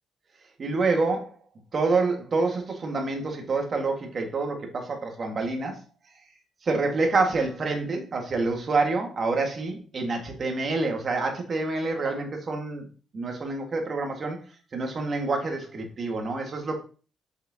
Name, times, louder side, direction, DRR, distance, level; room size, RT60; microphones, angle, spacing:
voice 1, 0.6-1.4 1.7-5.8 6.6-12.9 13.1-14.4 14.7-16.8, right 3 dB, 45° right, 3 dB, 1.8 m, -27 dB
6.5 x 6.0 x 2.9 m, 0.38 s
cardioid pair, 90°, 0 cm